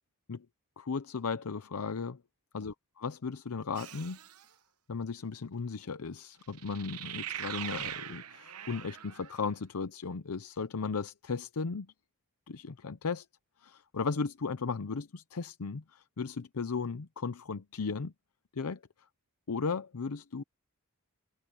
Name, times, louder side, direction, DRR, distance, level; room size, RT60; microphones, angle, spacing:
voice 1, 0.8-2.2 2.5-4.2 4.9-11.9 12.5-13.3 13.6-18.1 18.5-18.8 19.5-20.4, left 5 dB, 80° left, 0.7 m, -36 dB
sound 1, 3.7-4.4 6.5-9.4, right 10 dB, 85° right, 1.0 m, -41 dB
head